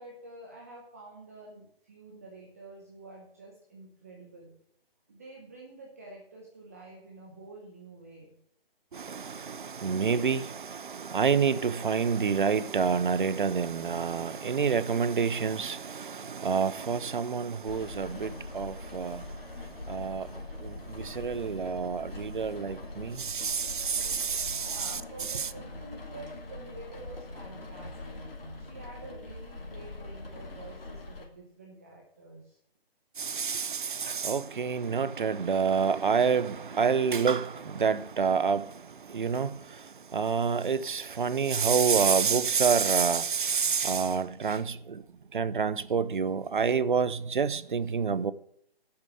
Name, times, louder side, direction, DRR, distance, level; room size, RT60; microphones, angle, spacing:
voice 1, 0.0-4.6 5.1-8.4 24.5-28.1 28.6-32.6, right 2 dB, 15° right, 0.8 m, -48 dB
voice 2, 8.9-19.2 19.9-20.3 20.6-25.4 33.2-38.7 39.1-39.6 40.1-45.0 45.3-48.3, right 6 dB, 55° right, 0.6 m, -28 dB
Rain, 17.6-31.3, left 2 dB, 70° left, 2.8 m, -42 dB
8.0 x 6.6 x 7.8 m
hypercardioid pair, 165°, 30 cm